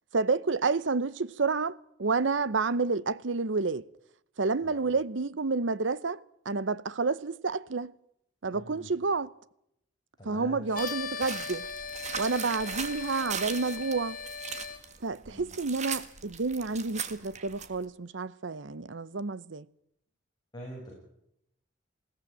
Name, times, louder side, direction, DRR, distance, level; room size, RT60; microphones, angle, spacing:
voice 1, 0.1-3.8 4.4-7.9 8.4-9.3 10.2-11.7 12.2-14.2 15.0-19.6, right 4 dB, 70° right, 0.8 m, -29 dB
voice 2, 4.6-4.9 8.5-8.9 10.2-10.6 15.2-15.5 20.5-21.0, equal, 20° left, 7.8 m, -44 dB
sound 1, 10.7-14.8, left 5 dB, 45° left, 3.0 m, -39 dB
sound 2, 10.8-17.8, right 6 dB, 40° right, 1.7 m, -39 dB
21.0 x 17.0 x 9.0 m
head